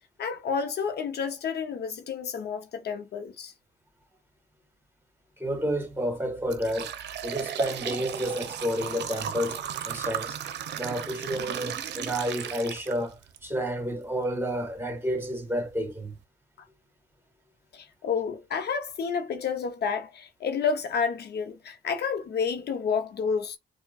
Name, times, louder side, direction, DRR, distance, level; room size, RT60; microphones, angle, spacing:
voice 1, 0.2-3.5 17.7-23.6, left 6 dB, 60° left, 0.6 m, -30 dB
voice 2, 5.4-6.9 7.2-10.4 10.7-16.1, equal, 10° right, 1.3 m, -30 dB
sound 1, 5.6-5.7 6.2-13.4 13.8-13.9 14.8-14.9 15.4-15.5 15.9-16.2, right 9 dB, 65° right, 0.6 m, -35 dB
4.4 x 2.2 x 2.3 m
supercardioid pair, 65°, 19 cm